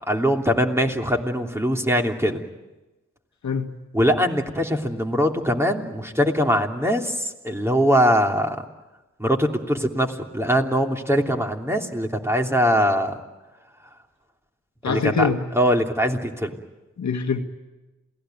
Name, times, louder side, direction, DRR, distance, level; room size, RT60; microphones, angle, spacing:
voice 1, 0.0-2.4 3.9-8.6 9.2-13.2 14.8-16.6, equal, 10° right, 3.1 m, -22 dB
voice 2, 3.4-3.8 14.8-15.5 17.0-17.4, left 5 dB, 70° left, 1.7 m, -24 dB
28.0 x 17.5 x 9.3 m
cardioid pair, 50°, 30 cm